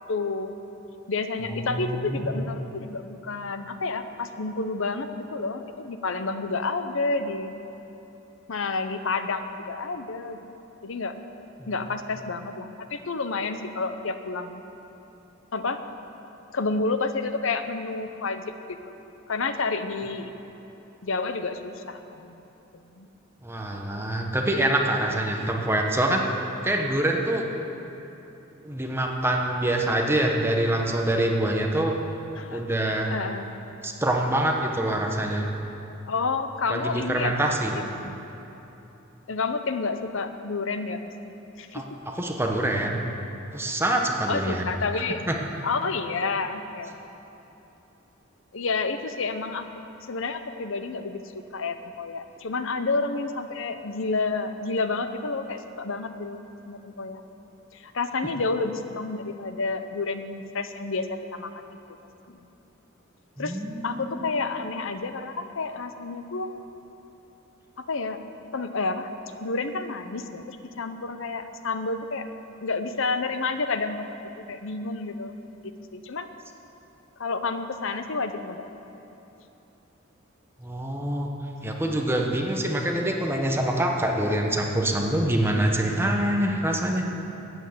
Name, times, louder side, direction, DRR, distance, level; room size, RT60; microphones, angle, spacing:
voice 1, 0.1-0.5 1.1-7.5 8.5-10.4 10.8-11.1 11.7-14.6 15.5-15.8 16.5-18.8 19.3-20.3 21.0-22.4 22.7-23.1 32.4-32.6 33.1-33.5 36.1-37.5 37.8-38.2 39.3-41.1 41.6-41.8 44.3-45.2 45.6-47.1 48.5-49.7 50.0-51.2 51.5-57.2 57.7-61.5 62.3-62.4 63.4-66.5 67.8-68.2 68.5-69.1 69.4-72.3 72.6-74.2 74.5-75.4 75.9-76.3 77.2-78.7, left 3 dB, 70° left, 9 dB, 0.8 m, -30 dB
voice 2, 1.5-2.4 11.6-11.7 23.4-26.2 26.6-27.5 28.6-31.9 32.5-33.2 33.8-35.5 36.7-37.8 41.7-41.8 42.1-43.1 43.5-44.7 45.3-45.4 63.4-64.3 80.6-81.3 81.6-87.1, right 1 dB, 10° right, 1 dB, 1.1 m, -25 dB
13.0 x 9.1 x 8.0 m, 3.0 s
head